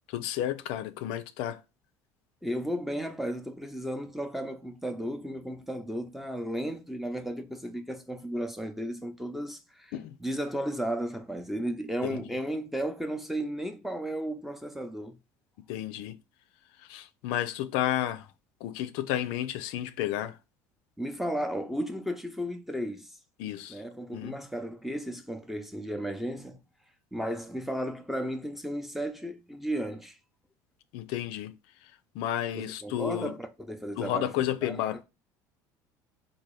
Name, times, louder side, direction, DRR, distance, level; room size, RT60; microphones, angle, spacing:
voice 1, 0.1-1.6 9.9-10.2 12.0-12.3 15.7-16.2 16.8-18.3 18.6-20.4 23.4-23.8 24.1-24.4 30.9-31.6 31.8-33.4 34.0-35.0, left 12 dB, 75° left, 0.4 m, -32 dB
voice 2, 2.4-9.9 10.2-15.2 21.0-23.1 23.7-26.6 27.1-30.2 32.6-34.3 34.6-35.0, equal, ahead, 0.7 m, -34 dB
3.7 x 2.6 x 3.1 m
supercardioid pair, 85°, 9 cm